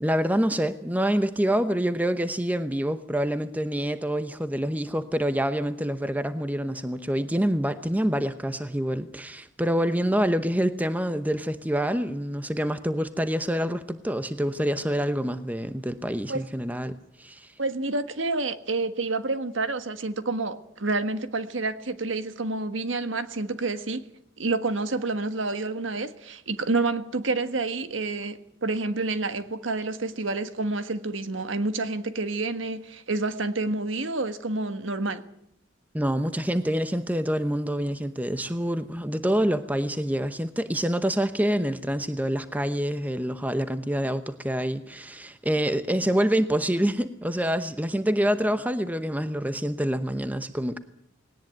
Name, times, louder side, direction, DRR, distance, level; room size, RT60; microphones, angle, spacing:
voice 1, 0.0-17.5 35.9-50.8, equal, 10° right, 0.9 m, -26 dB
voice 2, 17.6-24.0 24.4-35.2, right 3 dB, 90° right, 1.6 m, -28 dB
19.5 x 18.0 x 9.3 m
head